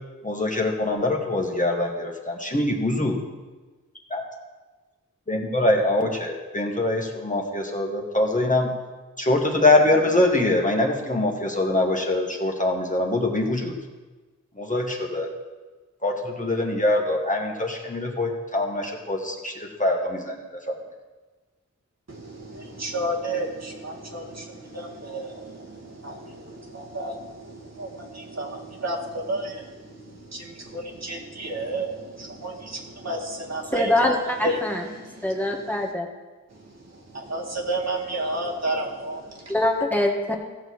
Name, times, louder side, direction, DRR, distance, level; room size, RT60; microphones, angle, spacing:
voice 1, 0.2-3.1 4.1-4.2 5.3-8.7 9.2-13.7 14.6-15.3 16.0-20.4 20.7-20.8, left 2 dB, 25° left, 0 dB, 1.9 m, -23 dB
voice 2, 22.1-34.2 34.4-35.9 36.5-39.6, right 1 dB, 55° right, -1 dB, 2.1 m, -32 dB
voice 3, 33.7-34.8 35.2-36.1 39.5-40.3, left 1 dB, 5° left, 1 dB, 1.6 m, -23 dB
16.0 x 6.6 x 4.8 m, 1.3 s
wide cardioid pair, 55°, 31 cm